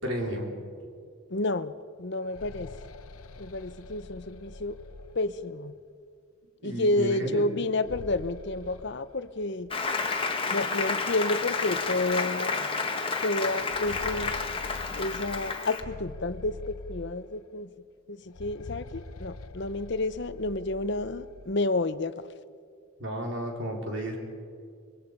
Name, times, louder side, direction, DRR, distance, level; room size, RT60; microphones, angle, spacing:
voice 1, 0.0-0.5 6.6-7.4 23.0-24.2, equal, 55° right, 0 dB, 4.3 m, -32 dB
voice 2, 1.3-1.7 2.0-2.7 3.4-4.8 5.1-5.8 6.6-9.7 10.5-12.6 13.2-14.4 14.9-17.7 18.1-22.3, left 2 dB, 50° left, 13 dB, 0.8 m, -30 dB
sound 1, 2.0-5.8 7.6-9.8 10.1-10.2 11.1-11.2 11.7-11.8 13.4-17.6 18.2-21.6, left 2 dB, 80° left, 0.9 m, -45 dB
Applause, 9.7-15.8, left 4 dB, 25° left, 1.5 m, -30 dB
25.5 x 23.0 x 5.4 m, 2.2 s
head